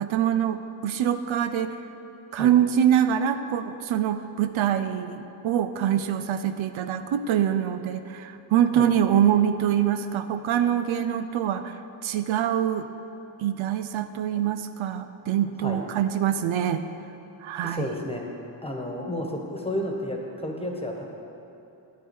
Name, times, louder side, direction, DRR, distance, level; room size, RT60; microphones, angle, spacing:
voice 1, 0.0-1.8 2.3-12.9 13.4-16.8 17.4-17.9, right 10 dB, 80° right, 10 dB, 0.5 m, -24 dB
voice 2, 17.6-18.3 18.6-21.0, left 1 dB, 10° left, 1 dB, 1.4 m, -31 dB
8.6 x 8.0 x 4.5 m, 3.0 s
cardioid pair, 50°, 48 cm